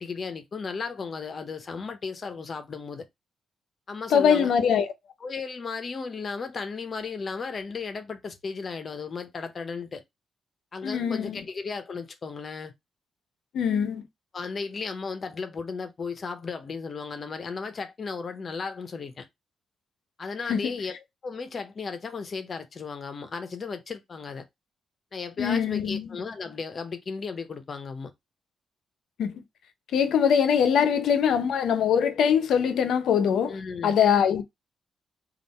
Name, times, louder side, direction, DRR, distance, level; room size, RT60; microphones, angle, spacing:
voice 1, 0.0-3.0 3.9-4.5 5.2-10.0 10.7-12.7 14.3-19.3 20.2-21.0 21.2-24.4 25.1-28.1 33.5-33.9, left 4 dB, 40° left, 0.8 m, -35 dB
voice 2, 4.1-4.9 10.8-11.4 13.5-14.0 20.5-20.7 25.4-26.1 29.2-29.4 29.9-33.5 33.8-34.4, left 7 dB, 80° left, 0.7 m, -22 dB
3.5 x 2.5 x 4.1 m
cardioid pair, 110°, 0 cm